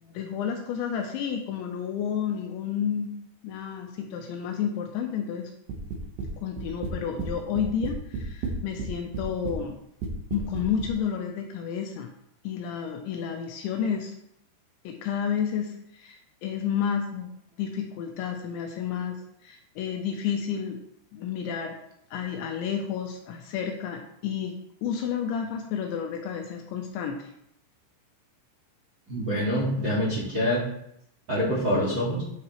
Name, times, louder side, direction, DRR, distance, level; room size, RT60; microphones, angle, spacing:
voice 1, 0.0-3.1 3.4-5.5 6.4-9.8 10.3-12.1 12.4-14.1 14.8-17.3 17.6-19.2 19.4-20.8 21.1-21.8 22.1-27.3, left 7 dB, 80° left, 3 dB, 2.9 m, -31 dB
sound 1, 5.7-6.3 6.6-7.3 7.6-8.9 9.1-9.6 10.0-10.9, right 4 dB, 65° right, 2.4 m, -32 dB
voice 2, 29.1-30.6 31.3-32.2, equal, 40° right, -7 dB, 1.9 m, -25 dB
9.4 x 7.9 x 3.2 m, 0.74 s
omnidirectional pair, 5.7 m